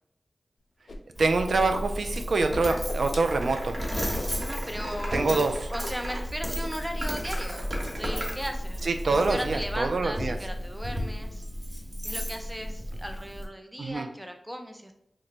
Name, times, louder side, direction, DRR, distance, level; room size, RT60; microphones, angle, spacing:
Whoosh swoosh swish, 0.9-1.0 1.3-2.2 2.4-4.3 4.7-5.0 5.3-5.5 5.8-6.3 6.6-7.1, left 2 dB, 65° left, 0.5 m, -41 dB
Coin (dropping), 1.1-13.4, equal, 30° right, 1.1 m, -34 dB
voice 1, 1.2-3.8 5.1-5.6 8.8-10.4 13.8-14.1, right 3 dB, 85° right, 6 dB, 0.3 m, -25 dB
sound 1, 2.7-2.8 3.3-6.2 7.0-8.4, right 1 dB, 65° right, 0.9 m, -39 dB
voice 2, 4.3-11.4 12.0-14.9, equal, 10° right, 4 dB, 0.5 m, -37 dB
3.1 x 2.1 x 4.0 m, 0.75 s
wide cardioid pair, 65°, 0 cm